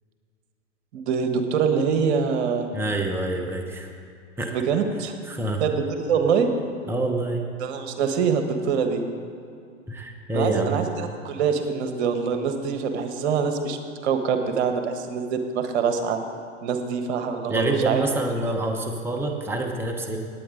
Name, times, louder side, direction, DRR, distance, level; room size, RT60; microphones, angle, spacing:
voice 1, 0.9-2.7 4.5-5.1 5.6-6.5 7.6-9.0 10.3-13.8 14.0-16.2 16.6-18.1, right 6 dB, 60° right, 6 dB, 1.4 m, -24 dB
voice 2, 2.7-3.9 4.4-4.5 5.3-5.6 6.9-7.5 9.9-10.8 17.5-20.2, right 2 dB, 5° right, 2 dB, 1.0 m, -26 dB
18.5 x 9.2 x 3.9 m, 2.4 s
hypercardioid pair, 110°, 37 cm